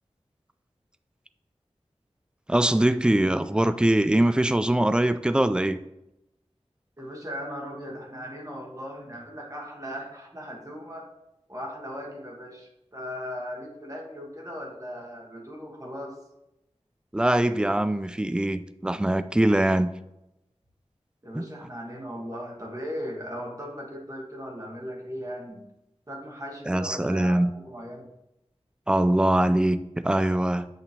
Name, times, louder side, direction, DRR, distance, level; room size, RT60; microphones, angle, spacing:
voice 1, 2.5-5.8 17.1-19.9 21.3-21.4 26.7-27.5 28.9-30.7, right 1 dB, 10° right, 12 dB, 0.3 m, -22 dB
voice 2, 7.0-11.1 11.5-16.2 21.2-25.6 26.1-28.1, equal, 30° right, -1 dB, 1.3 m, -38 dB
8.1 x 2.9 x 4.3 m, 0.89 s
wide cardioid pair, 55°, 11 cm